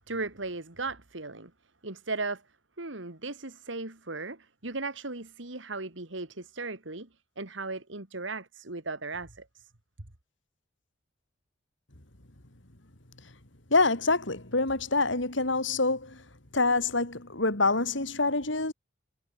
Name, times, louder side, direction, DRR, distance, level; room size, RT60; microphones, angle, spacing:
voice 1, 0.1-1.5 1.8-2.4 2.8-7.1 7.4-9.7, right 3 dB, 70° right, 2.5 m, -37 dB
voice 2, 13.7-16.2 16.5-18.7, left 3 dB, 70° left, 3.7 m, -26 dB
head